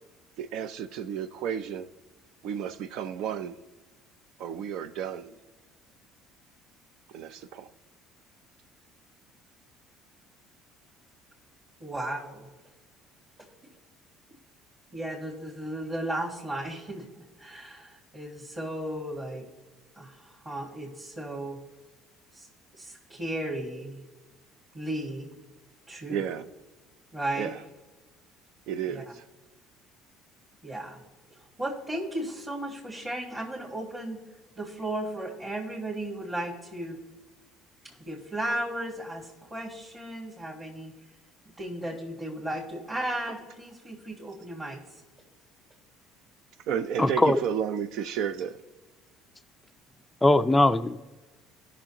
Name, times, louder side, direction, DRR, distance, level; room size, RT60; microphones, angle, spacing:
voice 1, 0.4-1.9 2.4-3.6 4.4-5.4 7.1-7.7 26.1-26.5 27.4-27.6 28.7-29.2 46.7-48.6, right 8 dB, 65° right, 0.5 m, -32 dB
voice 2, 11.8-12.5 13.4-13.7 14.9-19.4 19.9-21.6 22.3-22.5 22.7-24.0 24.7-25.3 25.9-26.3 27.1-27.5 28.9-29.0 30.6-31.0 31.3-34.2 34.6-37.0 38.0-40.9 41.6-44.8, right 1 dB, 20° right, 1.8 m, -35 dB
voice 3, 47.0-47.4 50.2-51.0, left 2 dB, 10° left, 0.3 m, -21 dB
16.5 x 6.2 x 2.9 m
cardioid pair, 115°, 0 cm